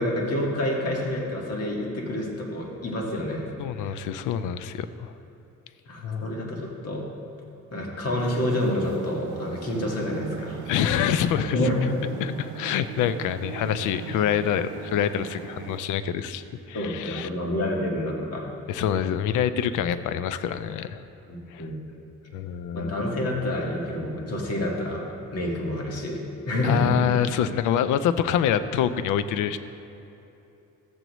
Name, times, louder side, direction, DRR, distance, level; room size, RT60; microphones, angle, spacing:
voice 1, 0.0-3.5 3.8-4.0 5.9-7.0 7.7-10.6 11.5-12.0 16.7-18.5 21.3-21.8 22.7-25.0 25.3-27.0, left 1 dB, 55° left, -1 dB, 1.8 m, -28 dB
voice 2, 3.6-5.1 6.0-6.3 10.7-11.6 12.2-17.3 18.7-21.0 21.5-21.6 22.3-22.9 26.6-29.6, left 9 dB, 90° left, 12 dB, 0.5 m, -26 dB
sound 1, 8.2-15.8, right 9 dB, 85° right, 0.5 m, -39 dB
14.0 x 7.9 x 3.1 m, 2.9 s
cardioid pair, 90°, 30 cm